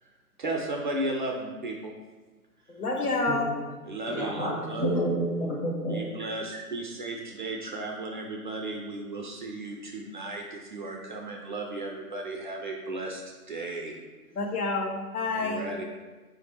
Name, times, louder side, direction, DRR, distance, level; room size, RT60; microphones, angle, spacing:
voice 1, 0.4-2.0 3.8-4.9 5.9-14.0 15.3-15.8, right 2 dB, 35° right, 0 dB, 0.4 m, -35 dB
voice 2, 2.7-3.5 14.3-15.7, left 3 dB, 75° left, 1 dB, 1.0 m, -28 dB
voice 3, 3.3-3.6 4.1-6.0, equal, 15° left, -5 dB, 0.6 m, -29 dB
4.6 x 2.6 x 4.2 m, 1.3 s
figure-of-eight pair, 125°, 45 cm